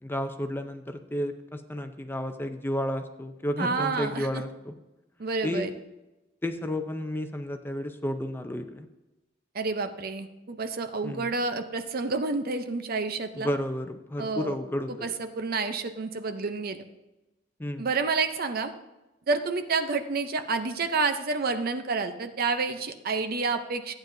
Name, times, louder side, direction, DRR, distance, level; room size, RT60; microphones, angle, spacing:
voice 1, 0.0-4.7 5.4-5.7 6.4-8.9 11.0-11.3 13.3-15.1 17.6-17.9, left 1 dB, 10° left, 7 dB, 0.6 m, -32 dB
voice 2, 3.6-4.4 5.2-5.7 9.5-13.5 14.2-14.6 15.0-16.8 17.8-18.7 19.3-23.9, right 4 dB, 50° right, 8 dB, 0.6 m, -29 dB
14.0 x 9.0 x 2.6 m, 1.0 s
head